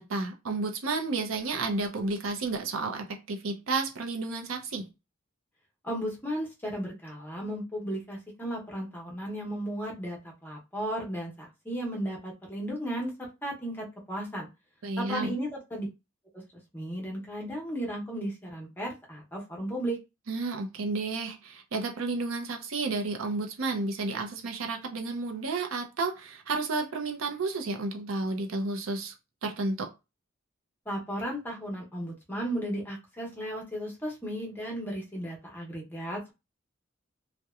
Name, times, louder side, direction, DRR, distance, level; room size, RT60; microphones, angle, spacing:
voice 1, 0.0-4.8 14.8-15.3 20.3-29.1 29.4-29.9, right 3 dB, 85° right, 0.6 m, -31 dB
voice 2, 5.8-13.1 13.4-14.5 15.0-15.9 16.3-16.4 16.7-20.0 30.9-36.3, right 1 dB, 10° left, 0.7 m, -35 dB
2.8 x 2.1 x 2.3 m
head